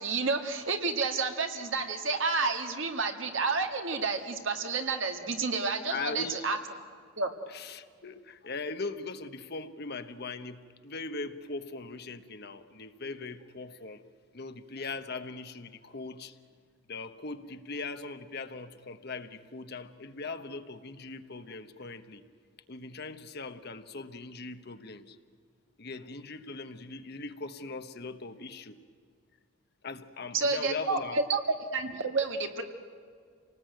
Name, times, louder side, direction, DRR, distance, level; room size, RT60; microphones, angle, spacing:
voice 1, 0.0-6.6 7.2-7.3 30.3-31.4 31.7-32.6, right 4 dB, 65° right, 5 dB, 1.9 m, -30 dB
voice 2, 5.9-6.5 7.5-14.0 14.3-16.4 16.9-22.2 22.7-25.2 25.8-28.8 29.8-31.2, left 3 dB, 50° left, 9 dB, 1.1 m, -40 dB
28.0 x 19.0 x 9.2 m, 2.1 s
head